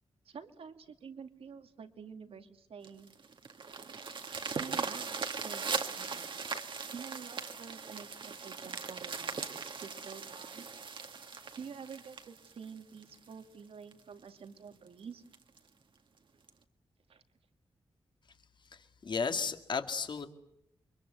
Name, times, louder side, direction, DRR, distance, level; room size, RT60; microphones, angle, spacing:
voice 1, 0.2-3.1 4.6-6.3 6.9-10.7 11.6-15.2 17.1-17.2, right 6 dB, 75° right, 7 dB, 2.4 m, -48 dB
sound 1, 2.8-13.3 13.9-14.0 14.4-14.5 14.9-15.0 15.3-15.6 16.5-16.6, right 5 dB, 55° right, 2.0 m, -39 dB
voice 2, 18.7-20.3, left 5 dB, 50° left, 8 dB, 2.2 m, -34 dB
30.0 x 24.0 x 8.0 m, 0.78 s
wide cardioid pair, 125°, 10 cm